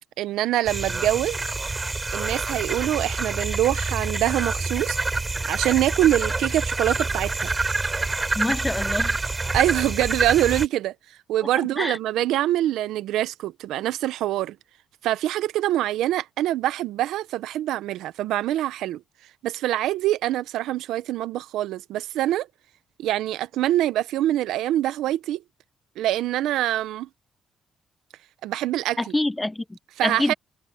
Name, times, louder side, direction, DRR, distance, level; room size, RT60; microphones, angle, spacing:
voice 1, 0.2-1.4 2.1-5.0 5.4-7.5 9.5-10.9 11.3-14.6 15.0-19.0 19.4-22.5 23.0-25.4 26.0-27.1 28.4-29.0 30.0-30.3, right 13 dB, 85° right, 0.8 m, -24 dB
sound 1, 0.7-10.7, right 3 dB, 25° right, 5.7 m, -27 dB
voice 2, 8.3-9.2 11.8-12.0 29.0-30.3, left 1 dB, 10° left, 1.3 m, -26 dB
cardioid pair, 90°, 0 cm